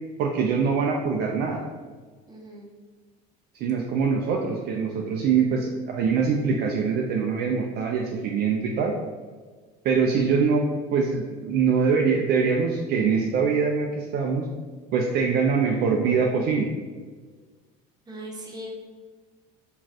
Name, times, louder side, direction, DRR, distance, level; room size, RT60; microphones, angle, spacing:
voice 1, 0.2-1.6 3.5-8.9 9.8-10.6 10.9-14.5 14.9-16.7, right 5 dB, 50° right, 0 dB, 0.4 m, -23 dB
voice 2, 2.3-2.7 18.1-18.7, right 1 dB, 20° right, -2 dB, 0.8 m, -39 dB
2.4 x 2.3 x 3.3 m, 1.5 s
supercardioid pair, 85°, 21 cm